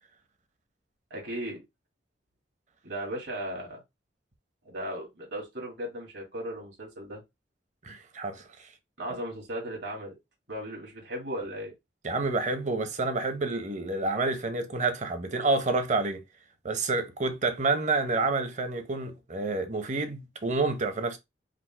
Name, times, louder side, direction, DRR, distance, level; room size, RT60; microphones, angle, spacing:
voice 1, 1.1-1.6 2.8-3.8 4.6-7.2 9.0-10.1 10.5-11.7, equal, 70° right, 2.0 m, -36 dB
voice 2, 7.8-8.7 12.0-16.2 16.6-21.2, right 3 dB, 40° right, 0.7 m, -29 dB
5.0 x 2.0 x 4.4 m
head